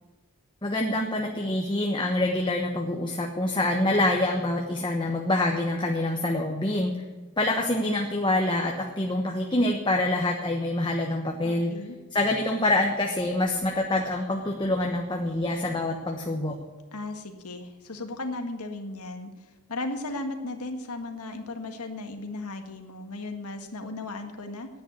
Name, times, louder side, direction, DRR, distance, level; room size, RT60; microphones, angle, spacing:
voice 1, 0.6-7.0 7.4-11.7 12.1-16.6, left 1 dB, 20° left, 1 dB, 1.1 m, -26 dB
voice 2, 11.4-12.0 16.9-19.3 19.7-24.7, left 2 dB, 85° left, 5 dB, 1.7 m, -36 dB
10.5 x 9.4 x 9.7 m, 1.3 s
head